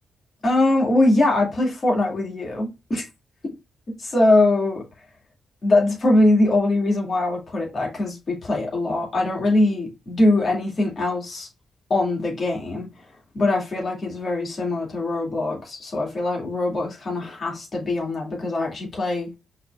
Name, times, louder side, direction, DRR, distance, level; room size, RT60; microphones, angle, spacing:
voice 1, 0.4-3.1 4.0-4.8 5.6-11.5 11.9-12.9 13.3-19.3, left 2 dB, 50° left, 2.3 m, -22 dB
5.7 x 3.3 x 2.4 m
hypercardioid pair, 40°, 0 cm